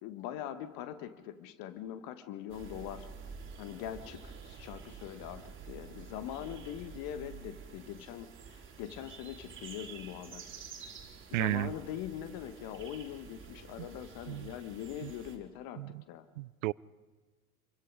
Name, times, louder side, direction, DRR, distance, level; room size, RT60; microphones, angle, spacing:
voice 1, 0.0-3.1 3.6-8.3 8.8-10.5 11.3-16.2, left 10 dB, 50° left, 1.8 m, -42 dB
sound 1, 2.5-15.4, right 6 dB, 25° right, 4.0 m, -49 dB
voice 2, 11.3-11.7 13.8-13.9 14.3-14.5 15.0-15.1 15.8-16.0 16.4-16.7, right 19 dB, 60° right, 0.6 m, -33 dB
27.0 x 23.5 x 5.1 m
figure-of-eight pair, 75°, 45 cm